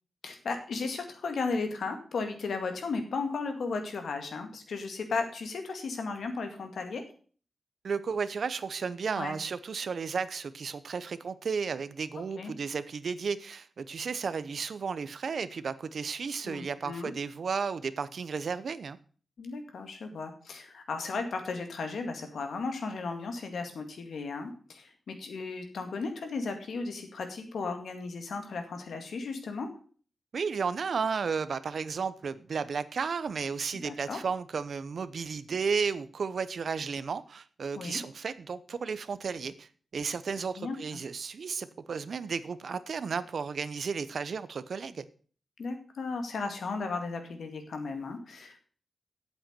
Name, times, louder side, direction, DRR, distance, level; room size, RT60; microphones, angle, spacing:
voice 1, 0.2-7.0 9.1-9.4 12.2-12.5 16.4-17.1 19.4-29.7 33.8-34.2 37.7-38.0 40.6-40.8 45.6-48.7, left 4 dB, 85° left, 2.0 m, -35 dB
voice 2, 7.8-19.0 30.3-45.0, right 5 dB, 70° right, 0.7 m, -33 dB
8.9 x 7.7 x 6.7 m
wide cardioid pair, 105°, 0 cm